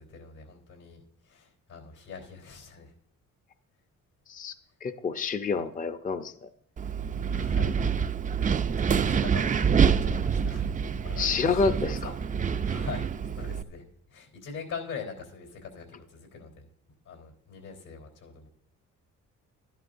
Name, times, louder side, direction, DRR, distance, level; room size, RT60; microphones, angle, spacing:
voice 1, 0.0-2.9 7.2-7.8 8.4-10.7 10.9-11.7 12.0-12.1 12.5-13.8 14.1-16.7 17.1-18.5, left 6 dB, 80° left, 2 dB, 3.6 m, -43 dB
voice 2, 4.8-6.5 11.2-12.1, left 5 dB, 25° left, 9 dB, 0.6 m, -28 dB
Wind, 6.8-13.6, right 7 dB, 25° right, 0.4 m, -26 dB
12.5 x 11.0 x 2.6 m, 0.66 s
cardioid pair, 90°, 30 cm